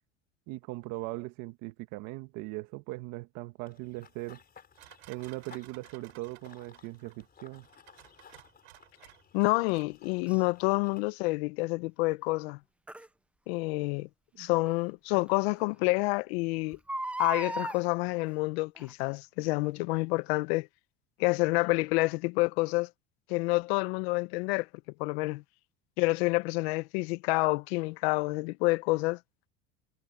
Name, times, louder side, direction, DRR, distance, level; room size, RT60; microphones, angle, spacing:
voice 1, 0.5-4.4 5.1-7.7 14.3-14.5, right 21 dB, 65° right, 1.7 m, -40 dB
Run / Bird vocalization bird call bird song, 3.7-11.1, left 7 dB, 30° left, 4.5 m, -58 dB
sound 1, 4.7-9.8, right 20 dB, 85° right, 5.8 m, -56 dB
voice 2, 9.3-12.6 13.5-14.1 14.4-16.8 17.2-20.7 21.2-22.9 23.3-24.7 25.0-25.4 26.0-29.2, left 24 dB, 75° left, 0.9 m, -28 dB
Crying sobbing, 10.3-10.4 12.9-13.1 14.7-14.8 15.3-15.4 15.6-15.7 16.7-17.8 18.8-19.1 19.7-19.8, right 1 dB, 5° right, 0.5 m, -36 dB
supercardioid pair, 105°, 31 cm